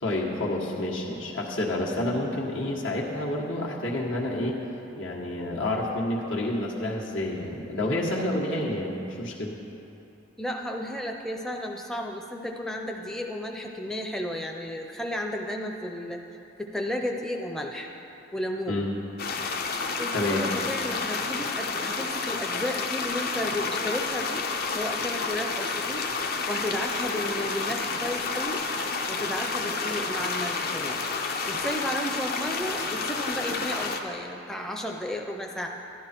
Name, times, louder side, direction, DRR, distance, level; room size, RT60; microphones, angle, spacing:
voice 1, 0.0-4.6 5.0-9.5 18.7-18.9 20.1-20.5, left 1 dB, 80° left, -3 dB, 1.6 m, -29 dB
voice 2, 10.4-16.2 16.6-17.9 18.3-18.9 20.0-24.4 24.8-26.0 26.5-28.6 29.1-31.0 31.5-35.7, left 1 dB, ahead, 1 dB, 0.5 m, -33 dB
sound 1, 19.2-34.0, left 4 dB, 50° left, 0.7 m, -30 dB
12.0 x 11.0 x 4.4 m, 2.9 s
head